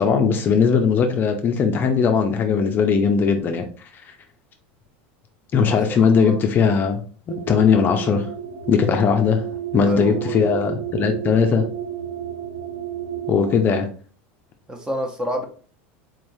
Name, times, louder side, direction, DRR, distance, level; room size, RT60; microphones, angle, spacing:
voice 1, 0.0-3.6 5.5-7.0 7.5-8.3 8.7-9.4 9.7-11.6 13.3-13.9, left 6 dB, 30° left, 5 dB, 0.5 m, -19 dB
voice 2, 5.6-6.4 9.8-10.4 14.7-15.4, equal, 10° right, 5 dB, 0.7 m, -29 dB
sound 1, 7.3-13.7, right 10 dB, 60° right, 1.5 m, -31 dB
3.9 x 3.3 x 2.6 m, 0.42 s
supercardioid pair, 130°, 6 cm